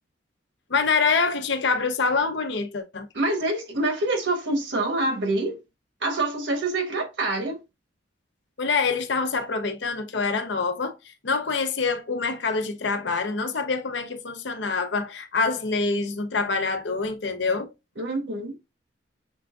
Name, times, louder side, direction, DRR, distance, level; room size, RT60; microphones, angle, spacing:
voice 1, 0.7-3.1 8.6-10.9 11.2-17.7, left 4 dB, 70° left, 0.7 m, -25 dB
voice 2, 3.1-5.6 6.0-7.6 18.0-18.6, right 2 dB, 75° right, 1.3 m, -26 dB
6.1 x 3.4 x 2.5 m
head